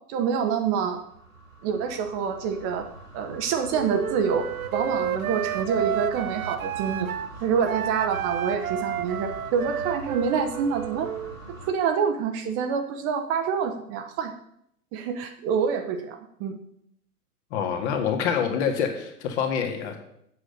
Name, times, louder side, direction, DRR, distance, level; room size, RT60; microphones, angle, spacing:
voice 1, 0.1-1.0 1.6-2.9 3.1-4.4 4.7-7.1 7.4-11.1 11.6-14.3 14.9-16.6, right 6 dB, 30° right, 6 dB, 1.0 m, -26 dB
sound 1, 0.8-11.7, right 1 dB, 85° right, 3.3 m, -43 dB
Wind instrument woodwind instrument, 3.7-7.3 7.6-11.4, right 9 dB, 60° right, 0.7 m, -31 dB
voice 2, 17.5-20.0, left 7 dB, 45° left, 4 dB, 1.9 m, -26 dB
8.1 x 6.5 x 6.4 m, 0.74 s
figure-of-eight pair, 105°, 47 cm